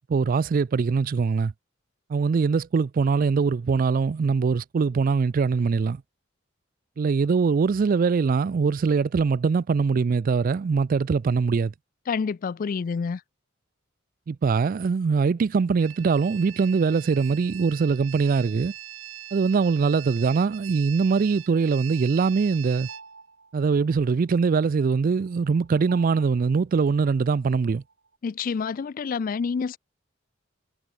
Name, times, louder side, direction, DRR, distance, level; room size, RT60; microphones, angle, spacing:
voice 1, 0.1-1.5 2.1-6.0 7.0-11.7 14.3-18.7 19.3-22.9 23.5-27.8, right 5 dB, 45° right, 0.3 m, -22 dB
voice 2, 12.1-13.2 28.2-29.8, left 5 dB, 40° left, 0.3 m, -28 dB
sound 1, 15.8-23.0, right 12 dB, 85° right, 1.7 m, -42 dB
sound 2, 21.3-28.2, right 4 dB, 60° right, 4.4 m, -52 dB
head